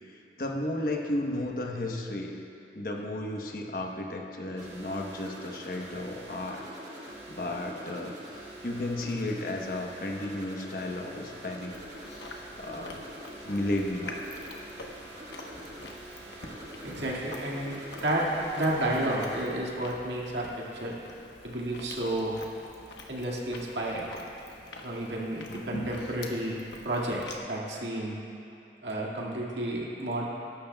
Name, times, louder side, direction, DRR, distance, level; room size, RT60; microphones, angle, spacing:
voice 1, 0.4-2.4 2.7-6.6 7.0-11.8 12.6-13.0 13.4-14.2, left 1 dB, 50° left, 1 dB, 1.0 m, -33 dB
sound 1, 4.5-19.4, right 1 dB, 40° right, 1.9 m, -45 dB
Chewing mastication, 11.7-27.4, left 2 dB, 80° left, 1.1 m, -46 dB
voice 2, 16.8-17.7 18.0-18.3 18.6-21.0 21.4-22.3 23.1-24.1 24.8-26.6 26.8-28.2 28.8-30.3, right 1 dB, 85° right, -4 dB, 2.0 m, -31 dB
20.0 x 11.5 x 2.3 m, 2.7 s
head